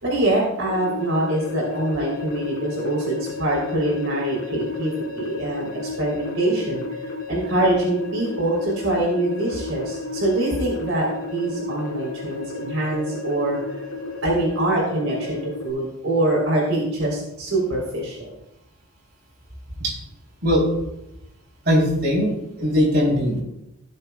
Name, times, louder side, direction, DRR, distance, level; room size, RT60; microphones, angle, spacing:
voice 1, 0.0-6.8 7.3-13.8 14.2-18.3, right 1 dB, 70° right, -4 dB, 3.4 m, -24 dB
sound 1, 0.7-15.7, left 3 dB, 80° left, 2.3 m, -33 dB
voice 2, 21.6-23.4, equal, 50° right, -5 dB, 3.8 m, -20 dB
16.5 x 6.8 x 2.4 m, 0.85 s
head